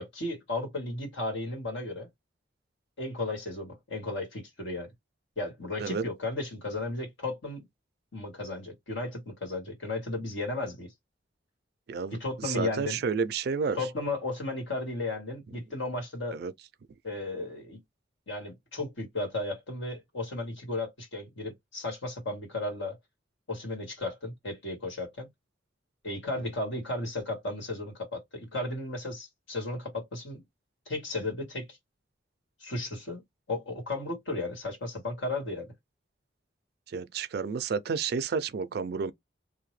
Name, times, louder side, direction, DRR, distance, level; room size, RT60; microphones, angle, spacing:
voice 1, 0.0-2.1 3.0-4.9 5.4-7.6 8.1-10.9 12.2-13.0 13.7-16.4 17.0-17.8 18.3-23.0 23.5-25.3 26.0-30.4 30.9-31.8 32.6-33.2 33.5-35.7, left 2 dB, 75° left, 1.5 m, -34 dB
voice 2, 12.4-13.8 16.3-16.5 26.4-26.5 36.9-39.1, right 5 dB, 55° right, 0.3 m, -30 dB
2.8 x 2.1 x 3.1 m
head